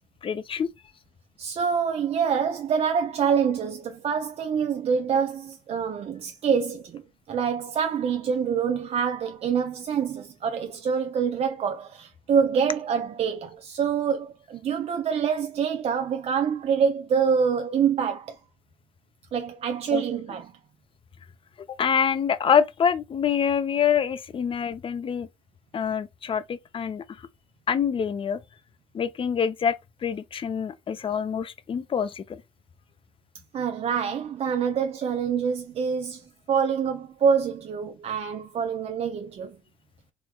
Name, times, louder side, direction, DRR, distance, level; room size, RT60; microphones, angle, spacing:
voice 1, 0.2-0.7 19.9-20.0 21.7-25.3 25.7-27.0 27.7-28.4 28.9-29.8 30.0-32.4, left 7 dB, 40° left, 0.5 m, -25 dB
voice 2, 1.4-7.0 7.3-18.4 19.3-20.5 33.5-39.6, right 7 dB, 45° right, 0.5 m, -26 dB
3.2 x 3.1 x 2.3 m
supercardioid pair, 60°, 14 cm